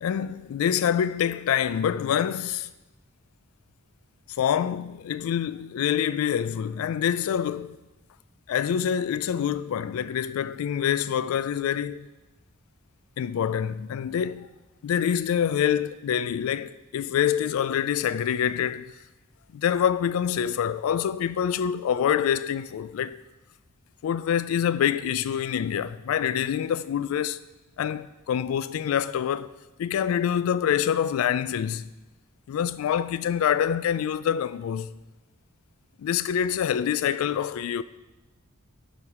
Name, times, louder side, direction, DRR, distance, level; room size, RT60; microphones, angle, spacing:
voice 1, 0.0-2.7 4.4-7.8 8.5-12.1 13.2-14.5 14.8-18.9 19.5-23.2 24.0-27.4 27.8-29.5 29.8-31.9 32.5-34.9 36.0-37.8, left 9 dB, 80° left, 0.3 m, -26 dB
7.0 x 5.0 x 4.8 m
head